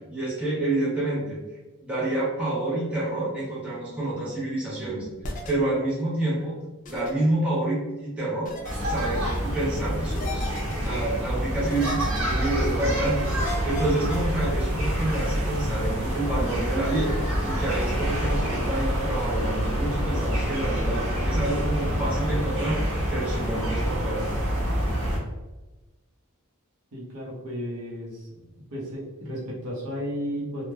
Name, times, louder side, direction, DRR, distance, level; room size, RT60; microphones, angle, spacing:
voice 1, 0.1-1.4 1.8-8.5 8.9-17.1 17.5-22.8 23.1-24.3, right 2 dB, 5° right, -8 dB, 0.8 m, -28 dB
sound 1, 5.2-5.5 6.9-7.1 8.5-8.7 10.1-10.9 11.7-12.5 13.3-14.5, left 1 dB, 35° left, 0.5 m, -35 dB
sound 2, 8.6-25.2, equal, 65° right, 0.9 m, -27 dB
voice 2, 26.9-28.3 28.7-30.7, equal, 90° right, -4 dB, 0.8 m, -33 dB
3.1 x 2.1 x 2.2 m, 1.1 s
head